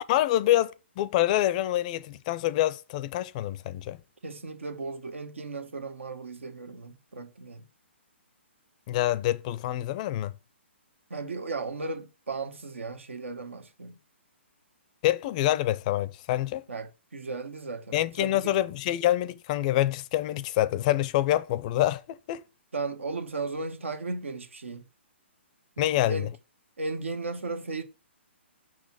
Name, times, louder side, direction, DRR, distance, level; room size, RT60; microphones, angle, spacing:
voice 1, 0.1-4.0 8.9-10.3 15.0-16.6 17.9-22.4 25.8-26.3, left 14 dB, 35° left, 0.4 m, -26 dB
voice 2, 4.2-7.7 11.1-14.0 16.7-18.6 22.7-24.9 25.8-26.3 26.8-27.8, right 3 dB, 80° right, 1.1 m, -36 dB
6.1 x 4.1 x 5.8 m
hypercardioid pair, 130°, 7 cm